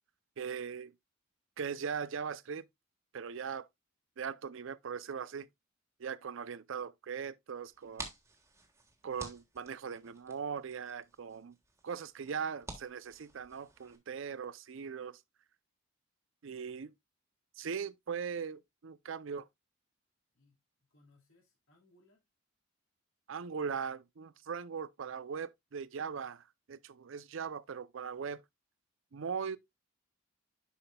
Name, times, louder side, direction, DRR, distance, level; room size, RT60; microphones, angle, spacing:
voice 1, 0.4-0.9 1.6-2.6 3.1-3.7 4.2-5.5 6.0-8.1 9.0-11.6 11.8-15.2 16.4-16.9 17.6-19.5 23.3-28.4 29.1-29.6, right 6 dB, 70° right, 0.5 m, -40 dB
sound 1, 7.7-14.0, right 2 dB, 15° right, 1.4 m, -51 dB
voice 2, 20.9-22.2, left 2 dB, 80° left, 2.5 m, -67 dB
9.9 x 6.0 x 2.2 m
head